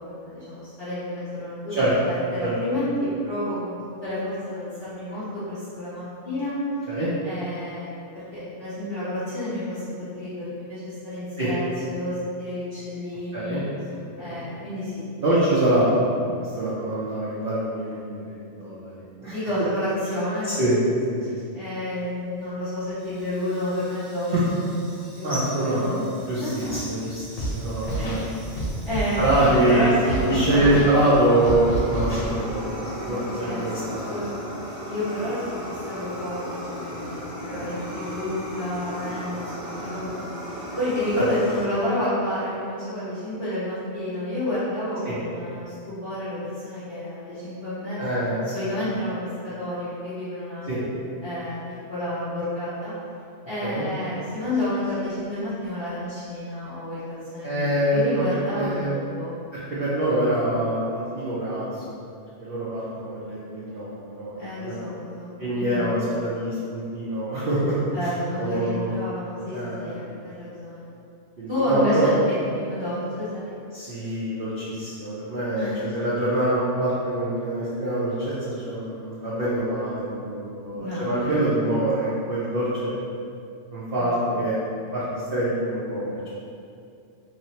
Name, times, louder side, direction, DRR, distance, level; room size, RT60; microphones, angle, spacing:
voice 1, 0.2-3.7 4.0-6.6 7.2-13.6 14.2-15.0 19.2-20.5 21.2-24.3 25.1-26.1 26.4-26.7 27.9-28.3 28.8-29.2 29.5-30.2 30.5-30.7 33.0-33.6 33.9-34.4 34.8-40.1 40.5-48.1 48.5-49.2 49.4-50.7 51.2-51.6 51.9-52.9 53.5-59.3 64.4-65.9 67.9-70.8 71.5-73.6 74.0-74.1 75.6-75.8 80.7-81.4 84.0-84.1, left 1 dB, 20° left, -15 dB, 1.1 m, -30 dB
voice 2, 13.9-14.4 15.2-16.1 16.4-19.4 20.5-20.8 21.1-21.5 25.2-28.3 29.2-34.2 37.5-37.7 41.2-41.3 45.0-45.1 48.0-48.4 50.7-50.8 53.6-53.8 57.4-58.2 58.5-58.9 59.8-61.8 62.4-64.8 65.4-67.8 68.4-68.9 69.5-70.1 71.4-72.1 73.7-78.3 78.6-82.9 83.7-84.6 84.9-86.3, right 1 dB, 60° right, -10 dB, 0.6 m, -25 dB
Fire, 23.0-41.6, equal, 5° right, 0.8 m, -37 dB
Scratching (performance technique), 27.4-27.5 27.8-28.2 28.6-29.6 30.1-30.2 30.5-30.9 31.4-32.3, right 1 dB, 90° left, 1.0 m, -28 dB
2.8 x 2.0 x 2.7 m, 2.5 s
omnidirectional pair, 1.3 m